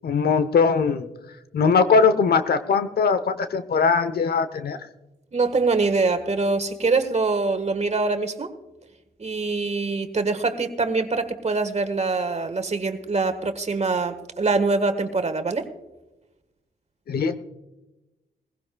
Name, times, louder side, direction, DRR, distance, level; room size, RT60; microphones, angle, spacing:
voice 1, 0.0-1.1 1.5-4.8 17.1-17.4, left 5 dB, 60° left, 12 dB, 0.9 m, -20 dB
voice 2, 5.3-8.5 9.2-15.7, right 3 dB, 40° right, 9 dB, 1.5 m, -24 dB
19.5 x 15.5 x 2.3 m, 1.0 s
supercardioid pair, 55°, 18 cm